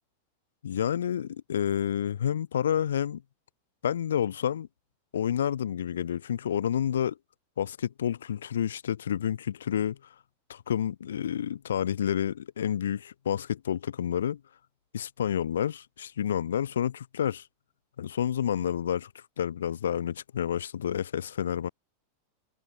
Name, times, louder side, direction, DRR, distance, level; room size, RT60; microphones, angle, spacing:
voice 1, 0.6-3.2 3.8-4.7 5.1-7.2 7.6-10.0 10.5-14.4 14.9-17.4 18.0-21.7, left 9 dB, 65° left, 0.4 m, -29 dB
figure-of-eight pair, 90°, 0 cm